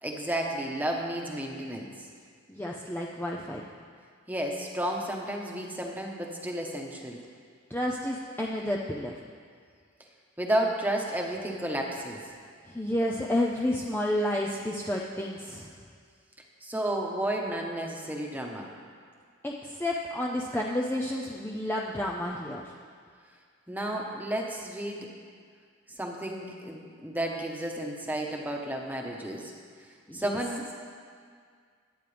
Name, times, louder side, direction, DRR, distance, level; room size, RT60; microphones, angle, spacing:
voice 1, 0.0-2.1 4.3-7.2 10.4-12.2 16.6-18.7 23.7-25.1 25.9-29.5 30.1-30.7, right 1 dB, 10° right, 0 dB, 1.2 m, -32 dB
voice 2, 2.5-3.6 7.7-9.1 12.7-15.7 19.4-22.7 30.1-30.4, left 1 dB, 10° left, -2 dB, 0.6 m, -30 dB
23.0 x 9.3 x 3.4 m, 2.1 s
head